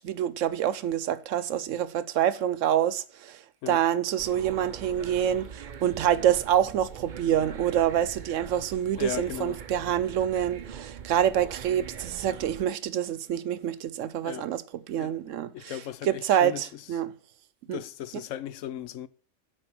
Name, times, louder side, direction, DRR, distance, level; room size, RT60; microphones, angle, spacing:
voice 1, 0.0-3.4 3.7-14.6 14.9-15.8 16.0-17.1 17.7-17.8, right 10 dB, 85° right, 1.0 m, -26 dB
sound 1, 4.2-12.6, right 8 dB, 50° right, 0.7 m, -42 dB
voice 2, 9.0-9.6 14.2-14.5 15.0-15.2 15.5-16.8 17.7-19.1, left 12 dB, 90° left, 1.0 m, -37 dB
9.0 x 5.0 x 6.0 m
omnidirectional pair, 1.3 m